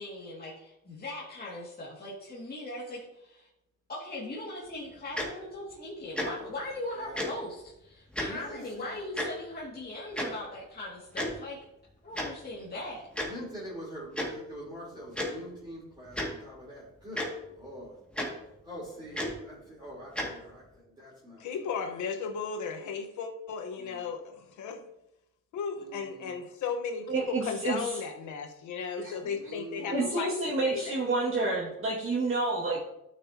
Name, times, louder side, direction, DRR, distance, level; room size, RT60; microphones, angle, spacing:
voice 1, 0.0-3.5 3.9-11.6 12.0-13.1, left 1 dB, 30° left, -6 dB, 2.2 m, -40 dB
Tick-tock, 5.2-5.3 6.1-6.3 7.2-7.3 8.1-8.3 9.2-9.3 10.2-10.3 11.1-11.3 12.2-12.3 13.2-13.3 14.1-14.3 15.2-15.3 16.1-16.3 17.2-17.3 18.2-18.3 19.1-19.3 20.2-20.3, left 1 dB, 5° left, 2.1 m, -31 dB
voice 2, 7.0-7.3 8.2-9.0 13.2-18.0 18.6-21.5 23.8-24.0 25.8-26.4 29.2-30.0, equal, 15° right, -7 dB, 3.6 m, -45 dB
voice 3, 21.4-24.8 25.5-30.3 30.6-31.0, left 5 dB, 75° left, 5 dB, 1.2 m, -35 dB
voice 4, 27.1-28.0 29.0-29.2 29.9-32.8, right 2 dB, 45° right, -6 dB, 2.1 m, -29 dB
12.0 x 6.5 x 2.8 m, 0.85 s
cardioid pair, 90°, 30 cm